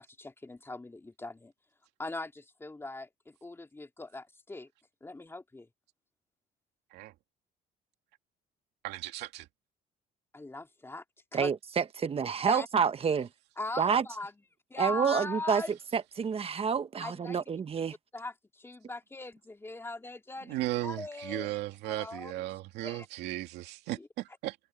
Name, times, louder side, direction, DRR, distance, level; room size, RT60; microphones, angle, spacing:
voice 1, 0.0-1.5 2.0-4.7 5.0-5.7 10.3-11.0 11.3-11.5 12.5-12.7 13.6-14.3 14.7-15.7 17.0-17.4 18.1-21.5 21.8-22.4 22.8-23.1 24.0-24.1, left 2 dB, 15° left, 3.0 m, -40 dB
voice 2, 8.8-9.5 20.5-24.6, right 16 dB, 85° right, 2.5 m, -36 dB
voice 3, 11.3-13.3 13.8-14.0 14.8-15.6 15.9-17.9, right 6 dB, 35° right, 1.2 m, -28 dB
cardioid pair, 110°, 17 cm